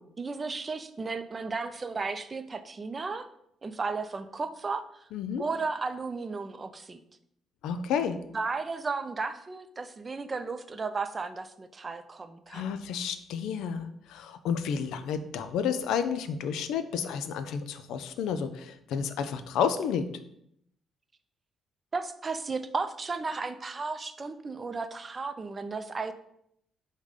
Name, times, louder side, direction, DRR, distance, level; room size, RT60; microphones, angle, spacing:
voice 1, 0.2-3.3 3.6-5.1 5.4-7.0 8.3-12.7 21.9-26.1, right 4 dB, 30° right, 10 dB, 0.4 m, -34 dB
voice 2, 5.1-5.4 7.6-8.2 12.5-20.1, left 7 dB, 85° left, 11 dB, 0.4 m, -31 dB
5.1 x 2.2 x 4.8 m, 0.73 s
cardioid pair, 90°, 0 cm